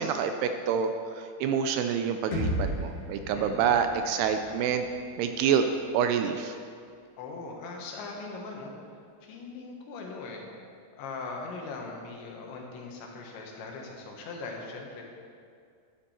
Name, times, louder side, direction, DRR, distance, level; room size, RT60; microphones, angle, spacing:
voice 1, 0.0-4.9 5.2-5.7 5.9-6.6, right 7 dB, 80° right, 7 dB, 2.4 m, -27 dB
sound 1, 2.3-6.2, equal, 45° left, 2.4 m, -36 dB
voice 2, 3.3-3.8 7.2-8.7 9.2-10.5 11.0-15.0, left 3 dB, 85° left, 0 dB, 3.8 m, -40 dB
12.0 x 10.5 x 4.4 m, 2.3 s
omnidirectional pair, 5.1 m